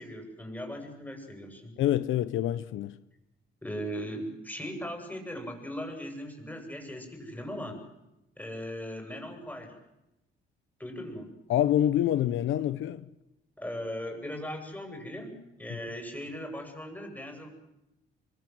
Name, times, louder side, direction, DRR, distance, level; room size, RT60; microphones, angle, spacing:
voice 1, 0.0-1.7 3.6-7.8 8.4-9.8 10.8-11.4 13.6-17.5, equal, 10° left, 7.9 m, -38 dB
voice 2, 1.8-3.0 11.5-13.0 15.7-15.8, left 11 dB, 80° left, 0.9 m, -26 dB
27.0 x 24.5 x 7.9 m
cardioid pair, 90°, 20 cm